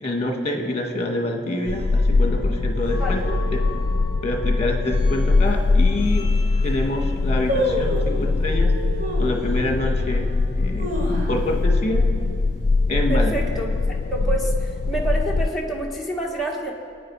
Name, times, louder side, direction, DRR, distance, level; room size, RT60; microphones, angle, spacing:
voice 1, 0.0-3.2 3.5-3.6 4.2-6.3 6.6-8.7 9.2-10.3 10.6-12.0 12.9-13.3, left 1 dB, 35° left, 2 dB, 1.8 m, -26 dB
sound 1, 1.4-10.7, equal, 65° right, 4.0 m, -41 dB
sound 2, 1.7-15.5, left 3 dB, 60° left, 0.4 m, -22 dB
sound 3, 5.5-5.6 6.2-6.3 6.5-6.9 7.5-8.2 9.0-9.4 9.9-10.0 10.5-11.7 12.0-12.1 12.4-12.8 13.2-13.5 14.2-14.9 15.2-15.3, equal, 45° right, 4.0 m, -27 dB
voice 2, 13.1-13.7 14.1-16.7, right 2 dB, ahead, -4 dB, 1.6 m, -28 dB
24.5 x 9.4 x 4.8 m, 2.3 s
head